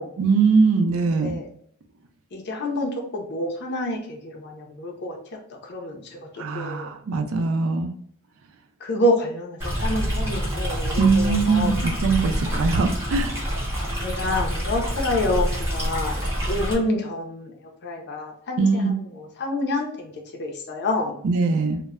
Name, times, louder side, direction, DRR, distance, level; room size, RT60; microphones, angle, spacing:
voice 1, 0.2-1.4 6.4-7.9 11.0-13.3 18.6-18.9 21.2-21.8, right 4 dB, 65° right, 5 dB, 0.4 m, -21 dB
voice 2, 1.0-1.5 2.3-6.9 8.8-11.7 14.0-17.5 17.8-20.1 20.4-21.2, left 1 dB, 50° left, 1 dB, 0.5 m, -28 dB
Stream, 9.6-16.7, equal, 10° right, 0.8 m, -27 dB
2.1 x 2.1 x 3.5 m, 0.65 s
head